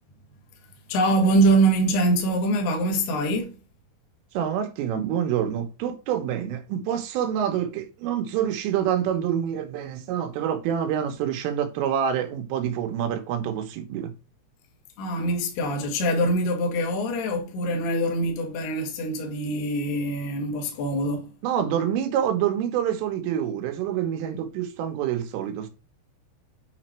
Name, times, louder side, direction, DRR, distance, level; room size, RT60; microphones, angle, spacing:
voice 1, 0.9-3.5 15.0-21.3, right 1 dB, 60° left, 3.8 m, -24 dB
voice 2, 4.4-14.1 21.4-25.7, right 9 dB, 80° right, 3.8 m, -27 dB
9.7 x 5.8 x 4.5 m
omnidirectional pair, 5.8 m